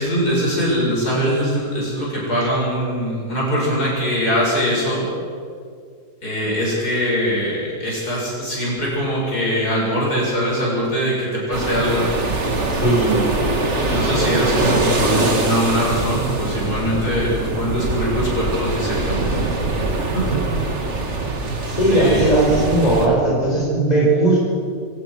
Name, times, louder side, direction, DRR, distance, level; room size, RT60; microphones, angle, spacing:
voice 1, 0.0-5.0 6.2-12.1 13.7-19.3 20.1-20.3 21.9-22.2, equal, 65° left, -5 dB, 7.9 m, -22 dB
sound 1, 11.5-23.1, right 2 dB, 40° right, 2.3 m, -23 dB
voice 2, 12.7-13.3 20.2-20.5 21.7-24.4, right 2 dB, 20° left, -4 dB, 5.4 m, -18 dB
25.0 x 18.0 x 6.3 m, 2.2 s
omnidirectional pair, 1.8 m